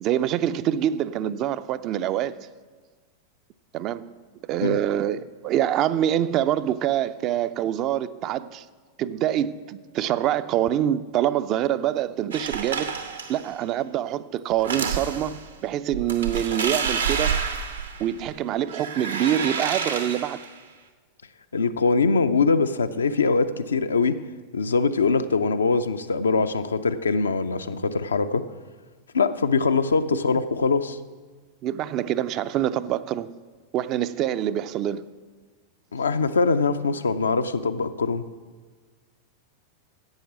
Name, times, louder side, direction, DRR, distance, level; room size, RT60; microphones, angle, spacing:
voice 1, 0.0-2.4 3.7-4.1 4.5-8.6 9.0-12.9 13.3-17.4 18.0-20.4 31.6-33.3 33.7-35.1, right 11 dB, 35° right, 0.4 m, -25 dB
sound 1, 12.3-13.5 14.5-15.4 15.9-18.3 18.7-20.5, right 6 dB, 75° right, 0.9 m, -29 dB
voice 2, 21.5-24.2 24.5-28.4 29.1-31.0 35.9-38.2, left 4 dB, 75° left, 0.5 m, -22 dB
10.5 x 8.4 x 6.1 m
figure-of-eight pair, 90°, 0 cm